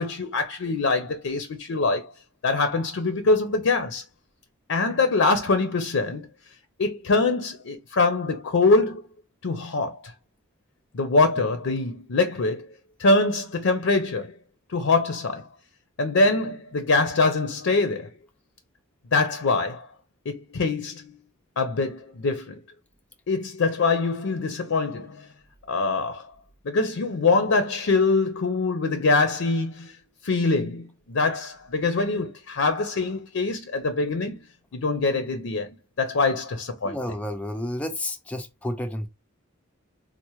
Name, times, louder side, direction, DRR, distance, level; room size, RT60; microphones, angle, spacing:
voice 1, 0.0-2.1 2.4-4.0 4.7-6.3 6.8-9.0 9.4-10.1 10.9-12.7 13.0-14.3 14.7-15.5 16.0-18.1 19.1-19.9 20.3-21.1 21.6-22.6 23.3-25.3 25.7-26.3 26.6-30.0 30.2-34.4 34.7-35.7 36.0-37.0, left 3 dB, 75° left, 0.5 m, -24 dB
voice 2, 36.8-39.1, left 1 dB, 5° left, 0.3 m, -31 dB
4.2 x 2.1 x 3.0 m
head